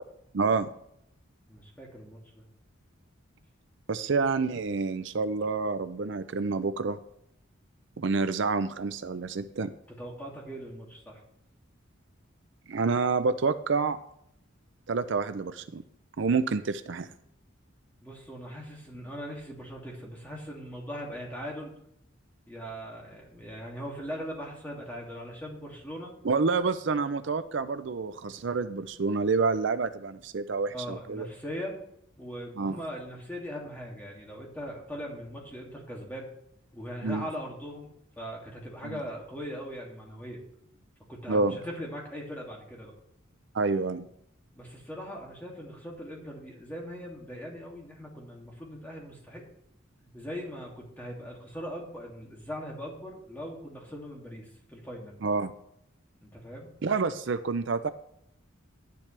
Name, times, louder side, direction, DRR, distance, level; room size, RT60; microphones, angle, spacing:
voice 1, 0.3-0.7 3.9-7.0 8.0-9.7 12.7-14.0 14.9-15.8 16.2-17.1 26.2-31.3 32.6-32.8 37.0-37.3 38.8-39.0 41.3-41.6 43.5-44.1 55.2-55.5 56.8-57.9, right 4 dB, 60° right, 11 dB, 0.5 m, -28 dB
voice 2, 1.5-2.5 10.0-11.2 18.0-21.7 22.5-26.1 30.7-31.8 32.2-36.3 36.7-40.4 41.1-42.9 44.6-49.4 50.0-55.2 56.2-56.7, equal, 10° left, -2 dB, 2.4 m, -40 dB
11.5 x 10.5 x 3.3 m, 0.73 s
head